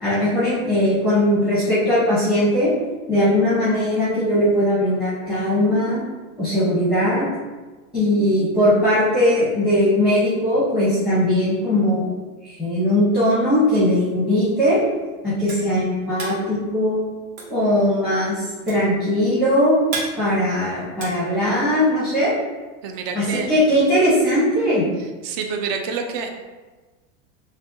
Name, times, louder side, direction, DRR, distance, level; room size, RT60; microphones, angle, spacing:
voice 1, 0.0-2.7 3.1-6.0 6.4-7.3 7.9-12.1 12.6-14.8 15.2-17.1 17.5-19.8 20.2-22.3 23.1-24.8, left 1 dB, ahead, -9 dB, 0.8 m, -19 dB
sound 1, 14.8-22.0, right 3 dB, 50° right, 1.3 m, -35 dB
voice 2, 22.8-23.5 25.2-26.3, right 5 dB, 35° right, 4 dB, 0.4 m, -27 dB
6.2 x 2.3 x 2.6 m, 1.3 s
supercardioid pair, 150°, 41 cm